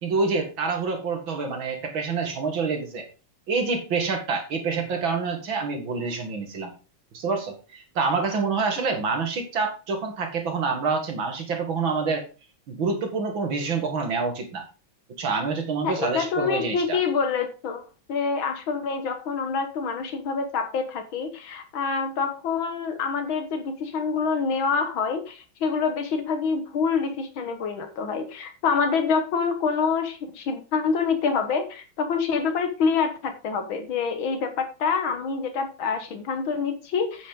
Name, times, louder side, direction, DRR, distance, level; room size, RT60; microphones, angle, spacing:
voice 1, 0.0-3.1 3.5-6.7 7.1-12.3 12.7-14.6 15.2-17.0, right 4 dB, 75° right, 4 dB, 2.8 m, -27 dB
voice 2, 15.8-17.8 18.1-37.3, left 5 dB, 80° left, 8 dB, 2.1 m, -26 dB
9.1 x 8.7 x 3.7 m, 0.33 s
omnidirectional pair, 2.2 m